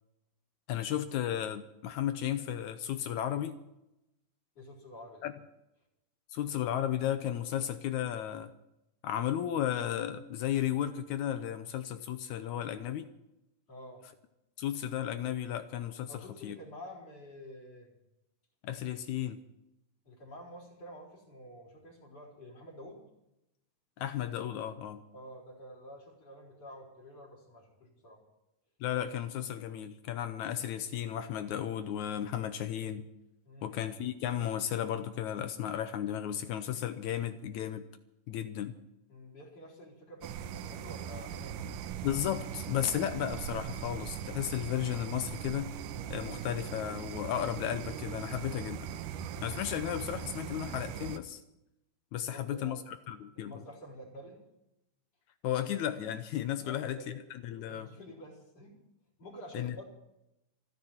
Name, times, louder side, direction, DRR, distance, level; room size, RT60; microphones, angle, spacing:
voice 1, 0.7-3.6 5.2-5.3 6.3-8.5 9.0-13.1 14.6-16.6 18.6-19.4 24.0-25.0 28.8-33.1 33.6-37.8 38.3-38.7 42.0-45.7 46.1-48.9 49.4-51.4 52.1-53.5 55.4-57.0 57.3-57.9 59.5-59.8, left 11 dB, 75° left, 11 dB, 1.9 m, -34 dB
voice 2, 4.5-5.3 13.7-14.0 16.1-17.9 20.0-23.1 25.1-28.2 33.4-33.9 39.1-41.8 52.2-52.9 53.3-54.4 56.6-57.2 57.7-58.8 59.2-59.8, equal, 50° left, 0 dB, 5.2 m, -49 dB
sound 1, 40.2-51.2, right 9 dB, 80° right, 2.3 m, -40 dB
28.5 x 10.0 x 4.4 m, 0.88 s
omnidirectional pair, 3.8 m